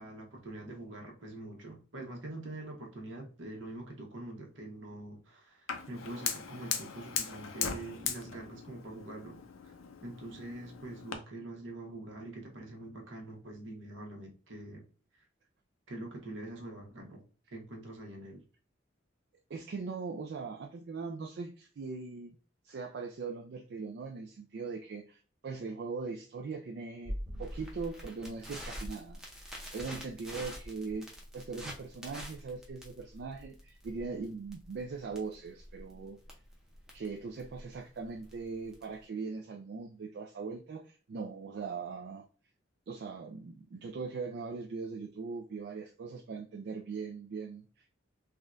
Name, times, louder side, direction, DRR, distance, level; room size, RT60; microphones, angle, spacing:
voice 1, 0.0-9.4 10.0-14.8 15.1-15.2 15.9-17.2 17.5-18.4, right 2 dB, 75° right, 1 dB, 0.9 m, -44 dB
Fire, 5.7-11.1, left 7 dB, 90° left, 0.5 m, -39 dB
voice 2, 19.5-22.4 22.6-27.1 27.4-31.1 31.3-36.2 36.9-42.2 42.9-47.7, right 4 dB, 55° right, 2 dB, 0.3 m, -40 dB
Crackle, 27.1-39.0, equal, 5° right, 0.6 m, -45 dB
3.5 x 2.2 x 2.4 m, 0.39 s
head